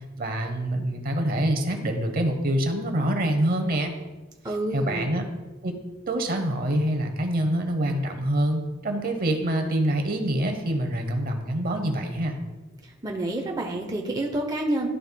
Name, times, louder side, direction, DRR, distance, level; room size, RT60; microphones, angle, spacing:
voice 1, 0.2-3.9 4.7-5.3 5.6-5.7 6.1-12.4, right 1 dB, 45° right, 5 dB, 0.8 m, -25 dB
voice 2, 4.4-5.1 13.0-14.9, right 1 dB, 20° right, 1 dB, 0.8 m, -28 dB
12.0 x 5.4 x 2.3 m, 1.1 s
head